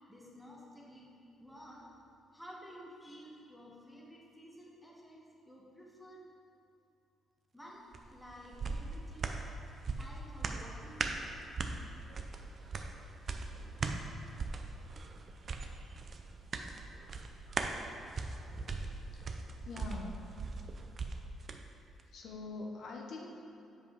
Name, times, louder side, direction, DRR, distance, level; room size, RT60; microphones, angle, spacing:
voice 1, 0.1-1.9 2.3-6.2 7.5-9.4 10.0-11.1, equal, ahead, -3 dB, 1.4 m, -52 dB
sound 1, 7.9-21.6 22.0-22.1, right 4 dB, 45° right, 0.5 m, -40 dB
voice 2, 19.6-20.2 22.1-23.3, left 3 dB, 65° left, 0 dB, 0.8 m, -43 dB
7.3 x 5.3 x 4.8 m, 2.8 s
cardioid pair, 90°, 0 cm